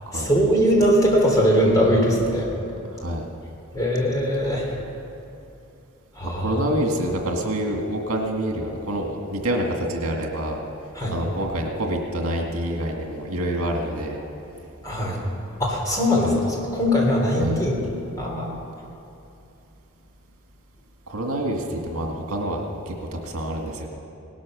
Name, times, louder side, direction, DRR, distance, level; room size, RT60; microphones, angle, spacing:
voice 1, 0.1-2.5 3.7-4.8 6.1-6.7 10.9-11.2 14.8-15.2 15.6-16.4 16.7-17.8 18.2-18.5, equal, 15° left, -2 dB, 3.1 m, -21 dB
voice 2, 6.2-10.6 11.1-14.2 16.2-16.3 17.4-17.6 21.1-22.9 23.2-23.9, right 1 dB, 80° right, 1 dB, 2.0 m, -27 dB
18.0 x 12.5 x 6.4 m, 2.7 s
head